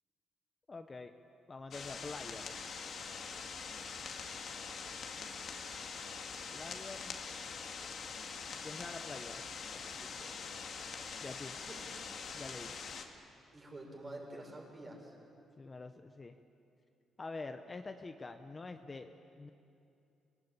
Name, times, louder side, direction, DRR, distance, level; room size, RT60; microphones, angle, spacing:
voice 1, 0.7-1.1 1.5-2.6 6.5-7.2 8.6-9.4 9.7-10.0 11.2-11.6 12.3-12.7 15.6-16.4 17.2-19.5, left 3 dB, 30° left, 7 dB, 1.0 m, -46 dB
sound 1, 1.7-13.0, left 5 dB, 60° left, 2.1 m, -44 dB
voice 2, 10.0-10.3 11.7-11.8 13.5-15.1, right 1 dB, 25° right, -1 dB, 6.4 m, -48 dB
25.0 x 18.5 x 8.7 m, 2.6 s
cardioid pair, 90°, 0 cm